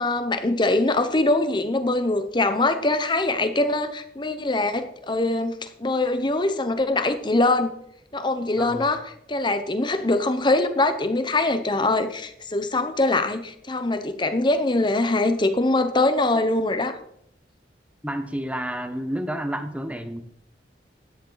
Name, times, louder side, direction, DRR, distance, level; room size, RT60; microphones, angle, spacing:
voice 1, 0.0-7.7 8.1-17.0, left 2 dB, 25° left, 10 dB, 1.0 m, -23 dB
voice 2, 8.6-8.9 18.0-20.2, right 1 dB, 10° right, 8 dB, 1.0 m, -30 dB
13.0 x 10.0 x 4.0 m, 0.71 s
head